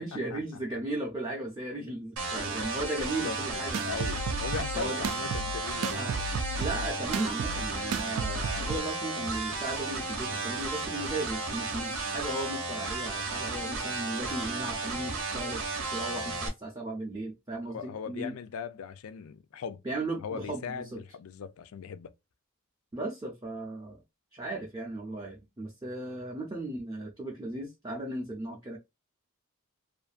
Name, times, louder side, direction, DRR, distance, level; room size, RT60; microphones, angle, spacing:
voice 1, 0.0-3.8 4.7-5.0 5.9-6.1 6.6-15.6 15.9-18.3 19.8-21.0 22.9-24.0 24.3-28.8, right 2 dB, 15° right, 0.5 m, -36 dB
sound 1, 2.2-16.5, right 3 dB, 70° right, 0.8 m, -34 dB
voice 2, 3.0-6.2 17.7-19.8 20.2-22.1, left 6 dB, 80° left, 0.4 m, -39 dB
sound 2, 3.7-8.8, right 3 dB, 85° right, 0.3 m, -34 dB
2.5 x 2.5 x 2.4 m
head